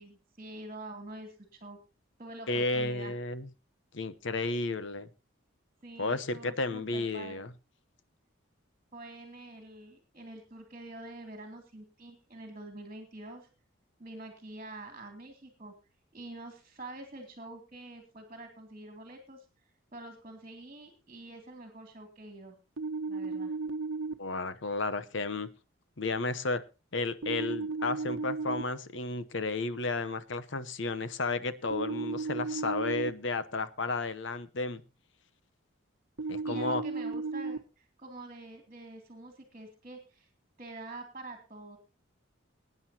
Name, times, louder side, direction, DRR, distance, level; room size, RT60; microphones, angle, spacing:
voice 1, 0.0-1.8 2.2-3.2 5.8-7.4 8.9-13.5 14.0-15.7 16.1-19.4 19.9-22.6 23.1-23.5 36.2-40.3 40.6-41.8, right 2 dB, 30° right, 4 dB, 2.7 m, -46 dB
voice 2, 2.5-3.5 3.9-5.1 6.0-7.5 24.2-25.5 26.0-26.6 26.9-34.8 36.3-36.8, left 3 dB, 60° left, 13 dB, 0.9 m, -32 dB
sound 1, 22.8-24.1 27.2-28.6 31.7-33.1 36.2-37.6, right 3 dB, 70° right, 1.0 m, -34 dB
22.5 x 9.5 x 2.9 m, 0.30 s
head